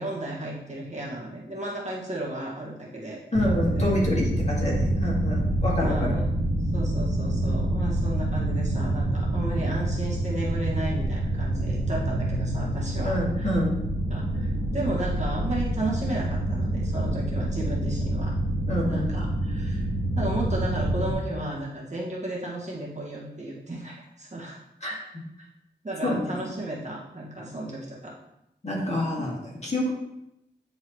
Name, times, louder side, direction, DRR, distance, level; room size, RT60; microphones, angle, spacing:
voice 1, 0.0-3.2 3.4-3.9 5.8-6.3 6.6-13.5 14.1-18.3 18.9-19.8 20.1-25.0 25.8-28.1, right 1 dB, 40° right, -4 dB, 1.7 m, -34 dB
voice 2, 3.3-6.1 13.0-13.8 18.7-19.2 24.8-24.9 26.0-26.4 28.6-29.9, left 1 dB, 35° left, -4 dB, 1.9 m, -27 dB
sound 1, 3.3-21.1, right 1 dB, 80° right, 1.9 m, -27 dB
9.6 x 3.9 x 3.1 m, 0.86 s
wide cardioid pair, 95°, 18 cm